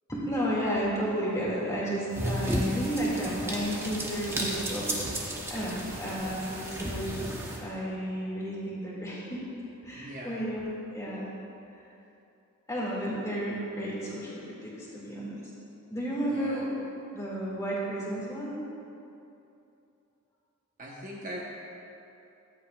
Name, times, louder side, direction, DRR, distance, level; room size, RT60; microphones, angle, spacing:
voice 1, 0.1-5.1 5.5-9.4 9.8-10.6 10.9-11.3 12.7-15.4 15.9-16.7 17.1-18.6, equal, 15° left, -7 dB, 2.2 m, -32 dB
sound 1, 2.1-7.6, right 1 dB, 10° right, 0.9 m, -33 dB
voice 2, 9.9-10.5 16.3-16.6 20.8-21.4, equal, 35° right, -3 dB, 1.0 m, -41 dB
14.5 x 10.5 x 2.4 m, 2.8 s
head